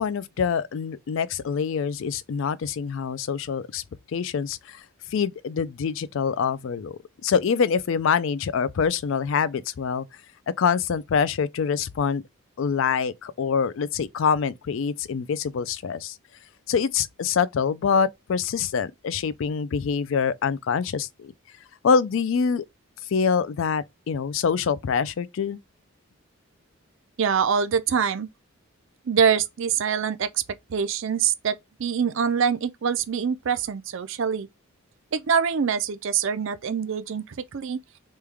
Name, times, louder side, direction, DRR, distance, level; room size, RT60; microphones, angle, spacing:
voice 1, 0.0-3.8 4.1-4.8 5.1-10.1 10.6-12.2 12.6-16.2 16.7-21.3 21.8-22.6 23.1-25.6, left 6 dB, 60° left, 0.3 m, -25 dB
voice 2, 27.2-28.3 29.1-30.4 30.7-34.5 35.1-37.8, right 7 dB, 60° right, 0.4 m, -24 dB
3.2 x 2.3 x 3.3 m
head